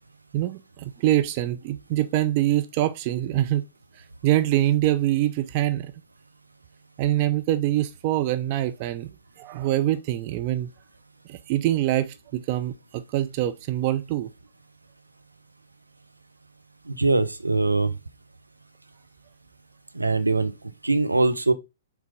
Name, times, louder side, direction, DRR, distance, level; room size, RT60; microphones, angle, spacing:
voice 1, 0.3-3.6 4.2-5.9 7.0-9.1 9.4-10.7 11.3-14.3, right 14 dB, 40° right, 0.5 m, -24 dB
voice 2, 16.9-17.9 19.9-20.5 20.8-21.5, right 3 dB, 85° right, 0.8 m, -22 dB
6.6 x 3.3 x 5.0 m
figure-of-eight pair, 115°, 0 cm